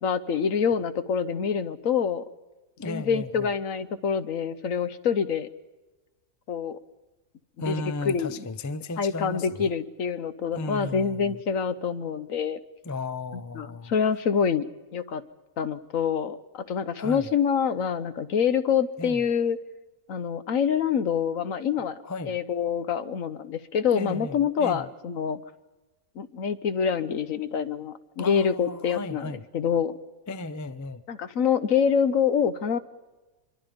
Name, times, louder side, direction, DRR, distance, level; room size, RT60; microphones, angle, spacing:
voice 1, 0.0-2.2 2.9-5.5 6.5-6.8 7.7-8.5 9.0-12.6 13.3-14.6 14.9-15.2 15.6-19.6 20.1-22.0 22.3-25.4 26.2-30.0 31.1-32.8, left 7 dB, 60° left, 1.2 m, -26 dB
voice 2, 2.8-3.5 7.6-9.8 10.5-11.4 12.8-13.9 17.0-17.3 19.0-19.2 22.0-22.4 23.9-24.9 28.2-29.5 30.3-31.0, left 2 dB, 25° left, 0.4 m, -35 dB
25.5 x 23.0 x 5.2 m
omnidirectional pair, 1.7 m